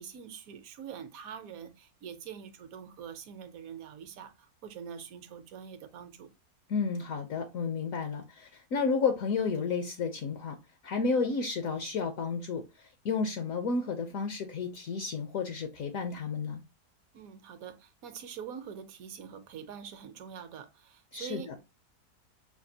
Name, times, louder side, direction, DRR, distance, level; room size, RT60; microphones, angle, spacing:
voice 1, 0.0-6.3 17.1-21.6, right 7 dB, 70° right, 1.1 m, -44 dB
voice 2, 6.7-10.6 10.8-16.6 21.1-21.5, left 5 dB, 65° left, 1.0 m, -32 dB
5.8 x 2.4 x 2.7 m
omnidirectional pair, 1.7 m